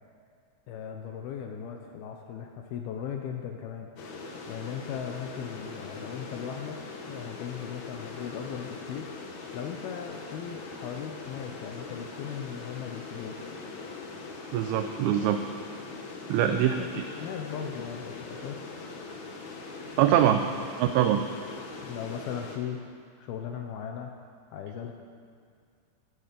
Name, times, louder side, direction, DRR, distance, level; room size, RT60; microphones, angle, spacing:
voice 1, 0.7-9.1 9.5-13.4 16.4-16.9 17.2-18.6 20.1-20.6 21.8-24.1 24.5-24.9, left 8 dB, 80° left, 3 dB, 2.3 m, -38 dB
sound 1, 4.0-22.6, left 3 dB, 60° left, 2.1 m, -41 dB
voice 2, 14.5-15.4 16.3-16.7 20.0-20.4 20.8-21.2, right 11 dB, 85° right, 7 dB, 2.2 m, -23 dB
12.5 x 12.5 x 8.4 m, 2.2 s
omnidirectional pair, 5.2 m